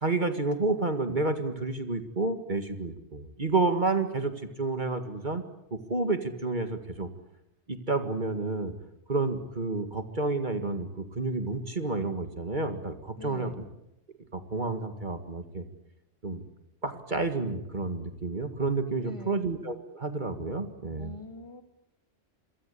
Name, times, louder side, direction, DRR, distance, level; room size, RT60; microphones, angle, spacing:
voice 1, 0.0-4.3 4.6-5.4 5.7-7.1 7.7-8.7 9.1-13.5 14.3-15.6 16.2-16.4 16.8-21.1, right 3 dB, 45° right, 8 dB, 2.1 m, -30 dB
voice 2, 13.2-13.7 19.0-19.5 21.0-21.6, left 2 dB, 25° left, 7 dB, 2.6 m, -44 dB
28.0 x 23.0 x 8.5 m, 0.85 s
omnidirectional pair, 1.1 m